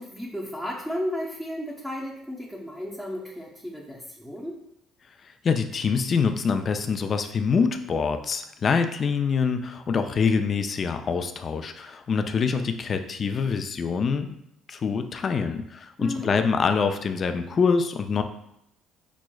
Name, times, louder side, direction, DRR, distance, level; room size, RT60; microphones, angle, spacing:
voice 1, 0.0-4.6 16.0-16.4, equal, ahead, -5 dB, 0.6 m, -33 dB
voice 2, 5.2-14.3 14.7-18.2, left 5 dB, 40° left, 7 dB, 0.3 m, -25 dB
5.9 x 2.0 x 2.2 m, 0.80 s
cardioid pair, 95°, 0 cm